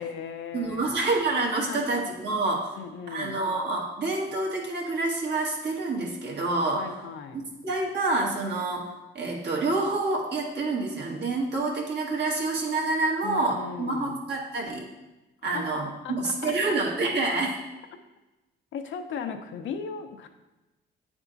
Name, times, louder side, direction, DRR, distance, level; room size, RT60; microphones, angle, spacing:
voice 1, 0.0-1.0 1.7-2.0 2.7-3.4 6.7-7.4 13.2-14.2 15.5-15.7 16.0-16.8 18.7-20.3, left 6 dB, 75° left, 6 dB, 0.7 m, -37 dB
voice 2, 0.5-2.7 3.1-6.8 7.6-14.9 15.4-17.6, right 3 dB, 60° right, -2 dB, 1.6 m, -27 dB
8.9 x 3.5 x 3.9 m, 1.0 s
cardioid pair, 90°, 20 cm